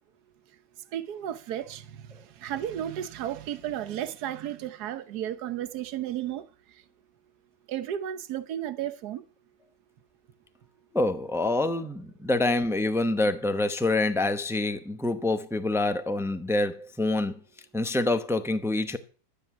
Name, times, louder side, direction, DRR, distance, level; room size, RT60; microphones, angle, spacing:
voice 1, 0.9-1.8 2.4-6.4 7.7-9.2, right 11 dB, 75° right, 1.4 m, -33 dB
voice 2, 10.9-17.4 17.7-19.0, left 2 dB, 5° right, 0.4 m, -26 dB
12.5 x 9.5 x 5.9 m
omnidirectional pair, 1.7 m